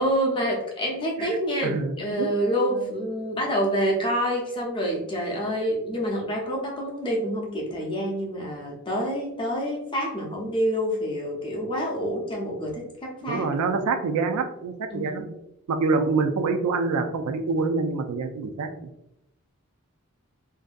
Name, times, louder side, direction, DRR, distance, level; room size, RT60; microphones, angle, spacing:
voice 1, 0.0-13.5 14.9-15.3, equal, 20° left, -1 dB, 0.5 m, -27 dB
voice 2, 1.6-2.3 2.7-2.9 13.3-15.3 15.7-18.7, right 4 dB, 85° right, 6 dB, 0.3 m, -26 dB
2.6 x 2.2 x 2.4 m, 0.83 s
head